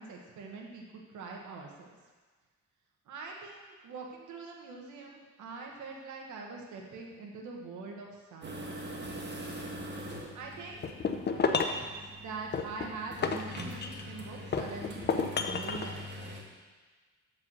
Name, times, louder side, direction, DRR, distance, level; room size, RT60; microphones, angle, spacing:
voice 1, 0.0-1.9 3.0-8.7 10.3-10.8 11.6-11.9 12.2-16.5, right 4 dB, 75° right, 0 dB, 1.4 m, -44 dB
sound 1, 8.4-16.4, equal, 35° right, 1.6 m, -43 dB
sound 2, 10.8-11.9 12.5-14.1 14.5-15.9, left 5 dB, 35° left, 0.7 m, -31 dB
7.4 x 4.9 x 6.3 m, 1.4 s
cardioid pair, 90°, 30 cm